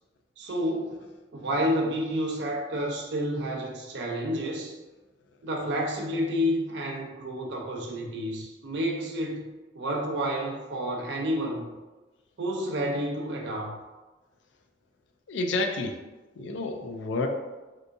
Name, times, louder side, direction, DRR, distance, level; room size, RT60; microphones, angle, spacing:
voice 1, 0.4-1.1 1.3-4.7 5.4-9.5 9.7-11.7 12.4-13.8, equal, 60° right, 0 dB, 0.5 m, -30 dB
voice 2, 15.3-16.0 16.4-17.3, left 2 dB, 70° left, 4 dB, 0.4 m, -29 dB
3.3 x 2.7 x 2.6 m, 1.2 s
head